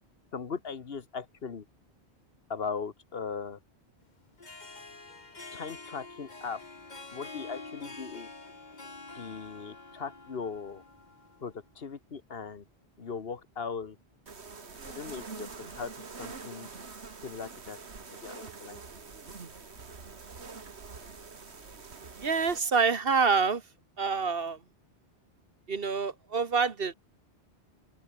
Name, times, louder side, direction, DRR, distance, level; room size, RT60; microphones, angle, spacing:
voice 1, 0.3-1.6 2.5-3.6 5.5-6.6 7.1-8.3 9.1-10.8 11.4-12.6 13.0-14.0 14.8-15.9 16.2-16.7 17.2-17.8 18.2-18.8, left 5 dB, 60° left, 1.5 m, -38 dB
Harp, 4.2-11.6, left 3 dB, 40° left, 2.1 m, -47 dB
sound 1, 14.3-22.6, right 4 dB, 80° right, 2.3 m, -45 dB
voice 2, 22.2-23.6 24.0-24.6 25.7-26.9, right 5 dB, 60° right, 1.6 m, -26 dB
open air
omnidirectional pair, 1.1 m